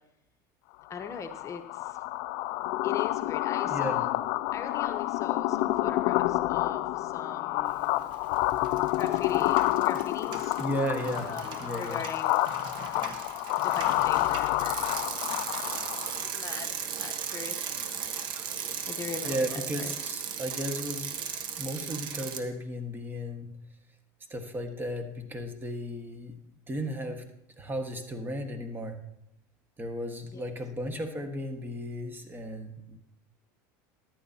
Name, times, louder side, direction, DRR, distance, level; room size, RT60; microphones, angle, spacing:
sound 1, 0.9-16.3, left 17 dB, 60° left, 0.4 m, -29 dB
voice 1, 0.9-2.0 2.8-4.1 4.5-8.1 8.9-10.5 11.3-12.4 12.9-13.2 13.6-15.1 15.7-16.0 16.3-18.0 18.9-19.9 30.2-30.5, left 6 dB, 30° left, 6 dB, 0.9 m, -40 dB
voice 2, 3.6-4.0 10.6-11.3 11.6-12.0 19.2-21.2 21.6-23.5 24.3-26.3 26.7-27.2 27.6-29.0 29.8-33.0, equal, 20° right, 5 dB, 1.6 m, -34 dB
Bicycle, 8.0-8.4 8.6-22.4, right 8 dB, 50° right, 1.2 m, -37 dB
14.0 x 11.0 x 2.8 m, 0.81 s
supercardioid pair, 100°, 10 cm